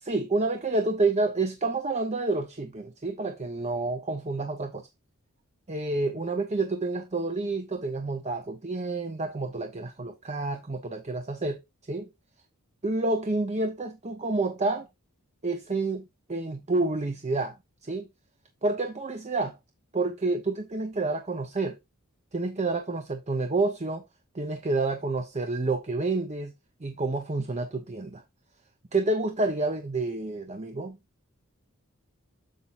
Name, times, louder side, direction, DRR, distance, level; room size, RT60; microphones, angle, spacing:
voice 1, 0.0-4.9 5.7-11.6 11.9-12.1 12.8-14.9 15.4-17.6 17.8-18.1 18.6-19.6 19.9-21.8 22.3-24.0 24.3-26.5 26.8-28.2 28.9-31.0, right 3 dB, 30° right, 0.9 m, -29 dB
7.7 x 7.2 x 2.6 m
head